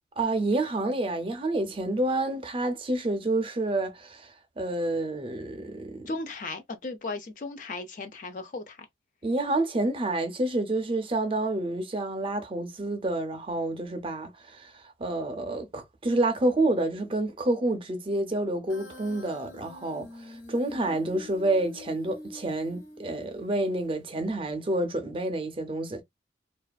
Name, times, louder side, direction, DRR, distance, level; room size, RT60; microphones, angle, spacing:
voice 1, 0.2-6.1 9.2-14.7 15.0-26.0, right 2 dB, 25° right, 0.5 m, -28 dB
voice 2, 6.1-8.9, left 3 dB, 40° left, 0.4 m, -36 dB
Human voice, 18.7-23.7, left 2 dB, 70° left, 1.3 m, -45 dB
2.4 x 2.3 x 2.3 m
head